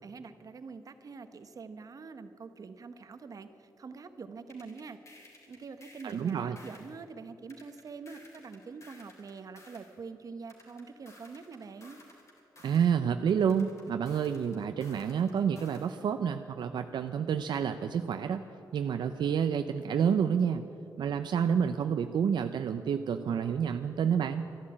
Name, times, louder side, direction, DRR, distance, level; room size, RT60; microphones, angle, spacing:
voice 1, 0.0-5.0 5.5-12.0, right 4 dB, 50° right, 10 dB, 1.0 m, -45 dB
sound 1, 4.5-7.0 7.5-9.9 10.5-12.9 13.5-15.9, left 1 dB, 40° left, 3.4 m, -56 dB
voice 2, 6.0-6.6 12.6-18.4 18.7-20.6 21.0-24.5, right 7 dB, 75° right, 8 dB, 0.5 m, -29 dB
13.0 x 11.5 x 8.8 m, 2.8 s
cardioid pair, 110°, 8 cm